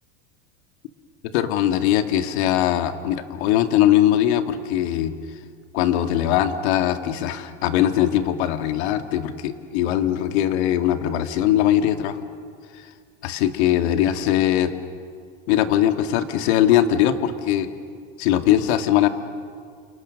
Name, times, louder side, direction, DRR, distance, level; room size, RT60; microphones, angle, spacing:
voice 1, 1.3-5.1 5.7-12.2 13.2-14.7 15.5-17.7 18.2-19.1, left 11 dB, 70° left, 7 dB, 2.2 m, -20 dB
29.5 x 28.5 x 6.5 m, 2.1 s
supercardioid pair, 155°, 34 cm